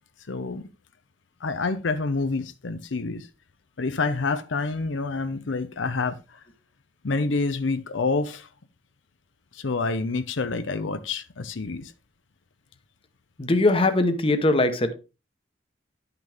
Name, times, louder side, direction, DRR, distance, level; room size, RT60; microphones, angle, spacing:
voice 1, 0.3-0.7 1.4-3.3 3.8-6.4 7.0-8.5 9.5-11.9, left 3 dB, 90° left, 0.7 m, -28 dB
voice 2, 13.4-14.9, left 2 dB, 30° left, 1.0 m, -21 dB
10.5 x 5.9 x 3.5 m
head